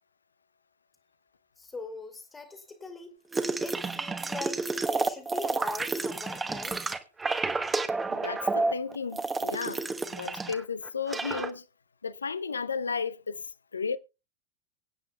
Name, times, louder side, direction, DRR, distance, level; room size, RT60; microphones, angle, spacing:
voice 1, 1.6-3.2 3.6-6.9, left 3 dB, 15° left, 1.9 m, -41 dB
sound 1, 3.3-10.6 10.9-11.5, right 3 dB, 15° right, 1.1 m, -30 dB
voice 2, 8.1-11.6 12.0-13.5 13.7-14.0, left 5 dB, 80° left, 0.5 m, -34 dB
24.0 x 8.9 x 2.3 m
figure-of-eight pair, 90°, 0 cm